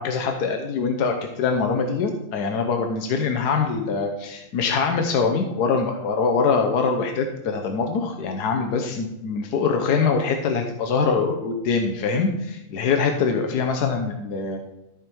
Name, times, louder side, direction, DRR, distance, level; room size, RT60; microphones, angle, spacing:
voice 1, 0.0-14.6, left 5 dB, 80° left, 4 dB, 1.4 m, -23 dB
13.5 x 5.2 x 4.5 m, 0.93 s
omnidirectional pair, 1.7 m